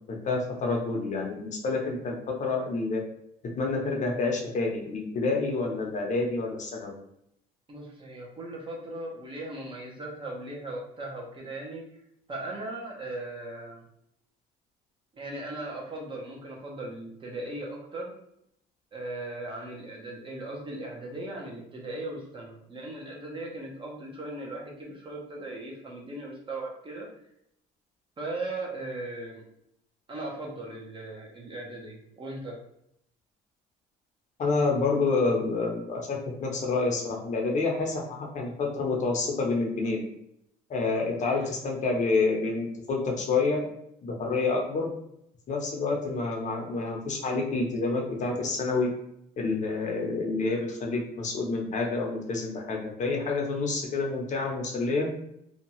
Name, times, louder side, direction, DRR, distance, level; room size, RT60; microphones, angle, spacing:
voice 1, 0.1-3.0 3.6-7.0 34.4-40.0 40.7-43.6 44.0-44.9 45.5-48.9 49.4-55.1, left 3 dB, 45° left, 0 dB, 0.7 m, -28 dB
voice 2, 7.7-11.8 12.3-13.8 15.1-18.1 18.9-27.1 28.2-29.4 30.1-32.6 41.3-41.5, right 2 dB, 30° right, -2 dB, 0.8 m, -38 dB
2.7 x 2.3 x 2.9 m, 0.75 s
cardioid pair, 110°, 17 cm